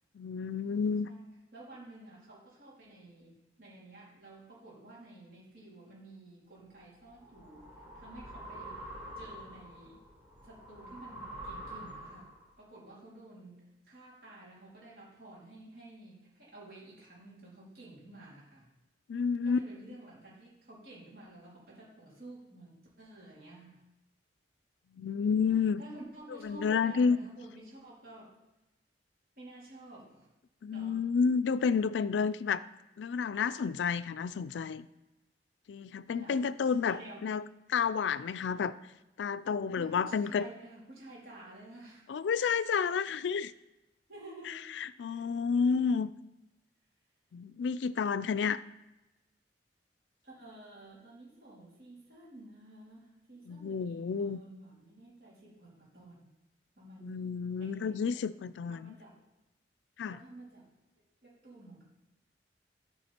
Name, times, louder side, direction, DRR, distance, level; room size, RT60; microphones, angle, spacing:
voice 1, 0.1-1.1 19.1-19.6 24.9-25.8 26.4-27.2 30.6-32.7 33.0-34.9 35.7-37.4 37.7-38.7 39.2-40.5 42.1-43.5 44.5-46.1 47.3-48.6 53.5-54.4 57.0-59.0 60.0-60.2, left 6 dB, 90° left, 16 dB, 0.4 m, -30 dB
voice 2, 1.5-8.8 9.2-10.0 10.4-12.3 12.6-18.7 19.4-23.8 25.8-28.3 29.4-30.3 30.7-31.1 36.1-37.3 39.8-42.0 44.1-44.7 45.0-45.3 50.2-56.3 56.8-58.2 58.7-59.2 60.1-60.7 61.2-61.8, right 2 dB, 60° right, -6 dB, 3.6 m, -51 dB
sound 1, 6.7-12.5, right 1 dB, 10° right, 2.7 m, -46 dB
12.5 x 4.9 x 4.4 m, 0.99 s
head